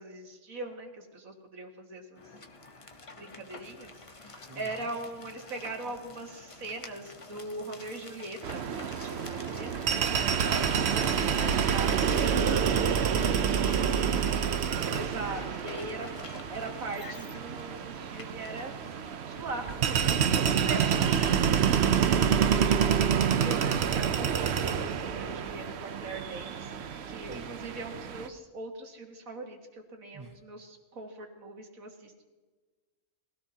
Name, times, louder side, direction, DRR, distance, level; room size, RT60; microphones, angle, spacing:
voice 1, 0.0-2.2 3.2-3.9 4.2-8.6 8.9-9.9 11.0-12.8 14.9-18.8 19.3-22.3 23.4-26.7 27.1-32.1, right 2 dB, 75° right, 3 dB, 2.2 m, -41 dB
sound 1, 2.1-19.4, left 3 dB, 25° left, 0.9 m, -48 dB
voice 2, 4.5-4.9 10.3-10.7 11.2-11.8 12.3-12.9 13.6-15.0 27.3-27.5 30.1-30.4, right 2 dB, 25° right, 8 dB, 0.4 m, -42 dB
sound 2, 8.4-28.3, right 7 dB, 60° right, 0.9 m, -28 dB
21.0 x 16.5 x 2.8 m, 1.3 s
omnidirectional pair, 1.5 m